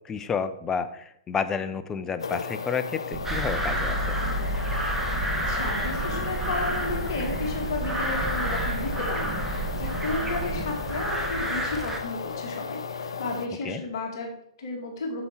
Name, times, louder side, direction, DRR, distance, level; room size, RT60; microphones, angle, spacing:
voice 1, 0.1-4.2 13.6-13.8, left 6 dB, 15° left, 11 dB, 0.6 m, -30 dB
sound 1, 2.2-13.5, left 5 dB, 70° left, 0.7 m, -35 dB
sound 2, 3.1-12.4, right 5 dB, 40° right, 1.1 m, -36 dB
sound 3, 3.2-12.0, equal, 10° right, 1.2 m, -30 dB
voice 2, 5.5-15.2, left 3 dB, 55° left, 1 dB, 2.1 m, -33 dB
7.9 x 7.1 x 4.7 m, 0.74 s
figure-of-eight pair, 115°, 3 cm